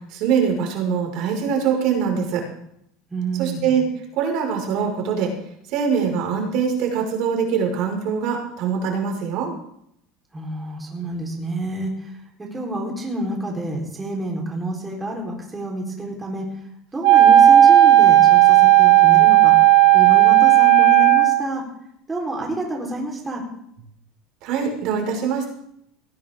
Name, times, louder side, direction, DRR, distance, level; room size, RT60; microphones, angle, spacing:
voice 1, 0.1-2.4 3.4-3.8 4.1-5.3 5.7-9.5 24.4-25.5, right 6 dB, 55° right, 1 dB, 5.5 m, -23 dB
voice 2, 3.1-3.6 10.3-16.4 16.9-19.5 19.9-21.6 22.1-23.4, right 2 dB, 10° right, -1 dB, 4.3 m, -28 dB
Wind instrument woodwind instrument, 17.0-21.4, right 13 dB, 85° right, 3.6 m, -12 dB
18.5 x 18.5 x 3.8 m, 0.73 s
supercardioid pair, 150°, 0 cm